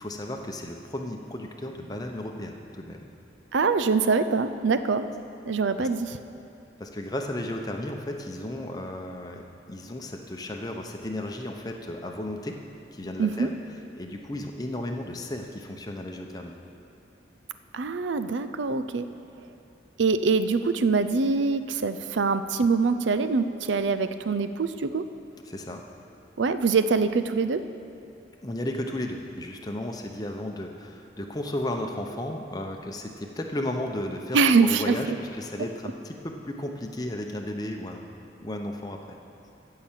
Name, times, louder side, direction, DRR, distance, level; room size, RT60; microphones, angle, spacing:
voice 1, 0.0-3.0 5.8-5.9 6.8-12.6 12.9-13.6 14.0-16.5 25.5-25.8 28.4-38.1 38.4-39.2, left 1 dB, 20° left, 2 dB, 0.8 m, -34 dB
voice 2, 3.5-5.1 5.4-6.1 13.2-13.5 17.7-19.1 20.0-25.1 26.4-27.6 34.3-35.2, right 4 dB, 75° right, 11 dB, 0.5 m, -24 dB
15.5 x 5.8 x 7.4 m, 2.7 s
head